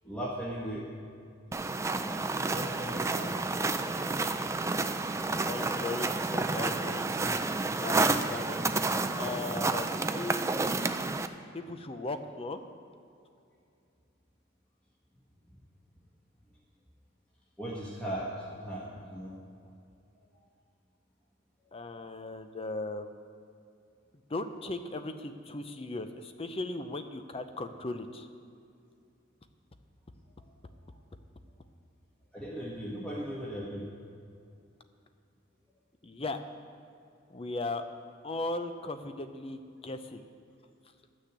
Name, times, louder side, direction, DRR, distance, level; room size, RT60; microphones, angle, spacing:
voice 1, 0.0-0.8 2.5-3.3 17.6-19.3 20.1-20.2 32.3-33.9, right 1 dB, 5° left, -6 dB, 1.4 m, -38 dB
sound 1, 1.5-11.3, right 3 dB, 15° right, 0.4 m, -30 dB
voice 2, 5.5-7.4 7.8-8.6 9.2-10.9 11.5-12.6 21.7-23.1 24.3-28.3 36.0-36.4 37.3-37.8 38.2-40.2, left 2 dB, 30° left, 8 dB, 0.6 m, -37 dB
11.5 x 6.4 x 8.1 m, 2.5 s
head